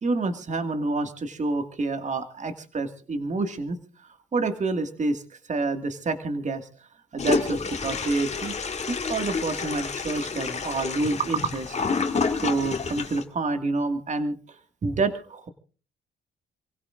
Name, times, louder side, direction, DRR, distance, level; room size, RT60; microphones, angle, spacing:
voice 1, 0.0-3.8 4.3-5.2 5.5-6.7 7.1-8.6 8.9-11.8 12.4-14.3 14.8-15.5, right 3 dB, 35° right, 7 dB, 2.0 m, -28 dB
Toilet flush, 7.2-13.2, left 5 dB, 35° left, 1.9 m, -29 dB
28.0 x 16.5 x 2.5 m, 0.37 s
cardioid pair, 90°, 20 cm